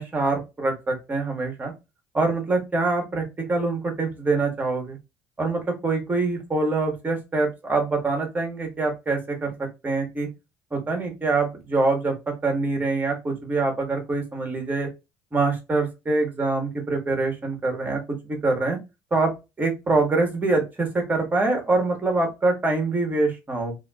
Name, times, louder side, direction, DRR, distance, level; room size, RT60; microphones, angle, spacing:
voice 1, 0.0-1.7 2.1-5.0 5.4-9.5 9.8-10.3 10.7-14.9 15.3-18.8 19.1-19.3 19.6-23.8, right 3 dB, 20° right, 2 dB, 1.3 m, -24 dB
2.7 x 2.7 x 2.3 m, 0.24 s
hypercardioid pair, 65°, 9 cm